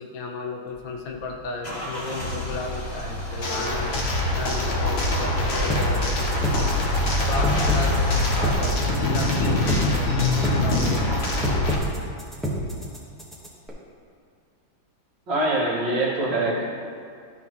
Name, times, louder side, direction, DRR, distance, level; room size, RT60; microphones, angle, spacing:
voice 1, 0.0-3.9 4.3-6.9 7.2-11.1 16.4-16.6, left 3 dB, 75° left, 2 dB, 1.6 m, -34 dB
Car / Engine starting / Idling, 0.7-8.5, left 2 dB, 20° left, 1.6 m, -30 dB
sound 1, 3.4-11.8, left 1 dB, 45° left, 0.9 m, -24 dB
sound 2, 5.7-13.7, equal, ahead, 0.8 m, -29 dB
voice 2, 15.3-16.6, right 2 dB, 65° right, -5 dB, 2.3 m, -24 dB
12.5 x 6.3 x 3.0 m, 2.3 s
omnidirectional pair, 2.2 m